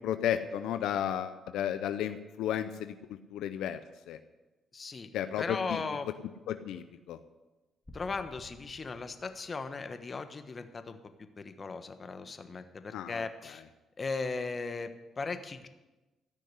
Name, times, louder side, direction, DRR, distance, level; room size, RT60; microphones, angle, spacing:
voice 1, 0.0-2.9 3.3-3.8 4.1-4.2 5.1-5.8 6.5-7.2 12.9-13.2, left 10 dB, 85° left, 10 dB, 0.7 m, -33 dB
voice 2, 4.7-5.1 5.4-6.1 7.9-11.0 11.4-13.6 14.0-15.7, left 4 dB, 35° left, 9 dB, 1.2 m, -37 dB
sound 1, 7.9-10.0, left 1 dB, 15° left, 2.1 m, -54 dB
14.5 x 6.5 x 9.7 m, 1.1 s
cardioid pair, 90°, 0 cm